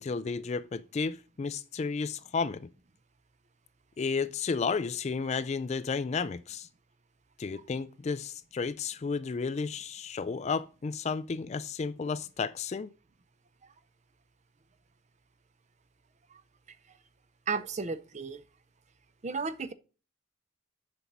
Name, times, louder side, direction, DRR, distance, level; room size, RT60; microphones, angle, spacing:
voice 1, 0.0-2.7 4.0-6.7 7.4-12.9, left 5 dB, 35° left, 0.3 m, -32 dB
voice 2, 17.5-18.4 19.2-19.7, right 4 dB, 35° right, 0.5 m, -34 dB
6.9 x 5.3 x 5.9 m
head